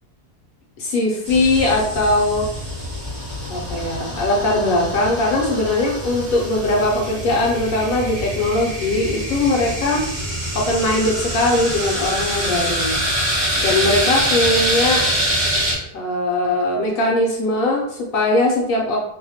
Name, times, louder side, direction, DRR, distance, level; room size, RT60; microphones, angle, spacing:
voice 1, 0.8-2.5 3.5-10.1 10.5-13.0 13.6-15.0 15.9-19.0, left 2 dB, 70° left, -2 dB, 0.9 m, -20 dB
sound 1, 1.2-15.7, equal, 35° right, 0.4 m, -25 dB
2.7 x 2.1 x 2.8 m, 0.74 s
omnidirectional pair, 1.7 m